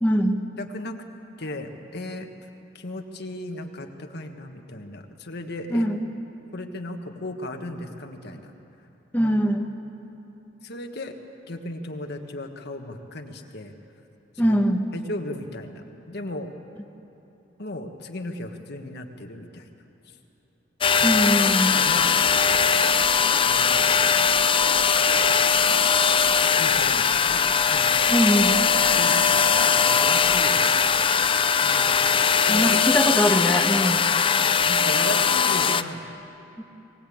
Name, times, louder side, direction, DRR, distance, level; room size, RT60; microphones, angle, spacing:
voice 1, 0.0-0.4 5.7-6.0 9.1-9.7 14.4-14.9 21.0-21.8 28.1-28.6 32.5-34.1 36.6-36.7, equal, 10° left, 2 dB, 1.2 m, -22 dB
voice 2, 0.6-1.0 1.4-2.3 2.7-5.9 6.5-8.5 9.2-9.3 10.6-11.1 11.5-13.7 14.3-14.6 14.9-16.5 17.6-19.7 21.0-21.2 21.7-22.1 23.4-24.0 26.5-27.9 29.0-31.0 31.3-32.7 34.4-36.0, left 1 dB, 60° left, 4 dB, 1.5 m, -36 dB
sound 1, 20.8-35.8, left 6 dB, 30° left, 0.5 m, -20 dB
21.0 x 19.5 x 8.7 m, 3.0 s
head